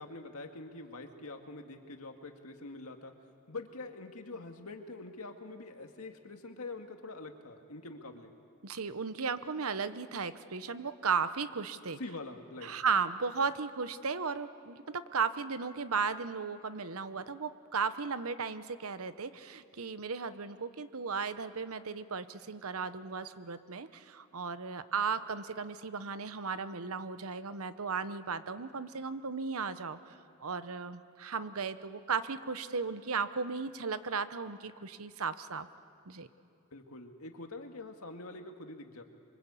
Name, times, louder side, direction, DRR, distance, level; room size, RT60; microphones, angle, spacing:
voice 1, 0.0-3.1 3.5-8.3 12.0-12.7 36.7-39.0, left 2 dB, 80° left, 4 dB, 2.0 m, -45 dB
voice 2, 8.6-12.0 12.6-35.7 36.1-36.3, right 5 dB, 75° right, 12 dB, 1.0 m, -35 dB
26.0 x 23.5 x 8.4 m, 2.6 s
head